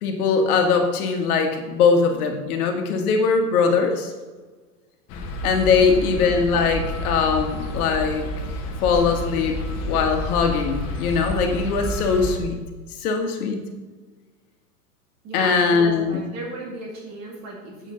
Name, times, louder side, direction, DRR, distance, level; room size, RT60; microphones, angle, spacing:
voice 1, 0.0-4.1 5.4-8.3 8.8-9.6 9.9-12.6 13.0-13.6 15.3-16.2, left 5 dB, 60° left, 4 dB, 1.6 m, -21 dB
sound 1, 5.1-12.4, left 1 dB, 30° left, 1.3 m, -30 dB
voice 2, 5.8-6.2 15.2-17.9, right 2 dB, 30° right, -2 dB, 2.1 m, -36 dB
8.0 x 7.6 x 3.8 m, 1.3 s
hypercardioid pair, 125°, 50 cm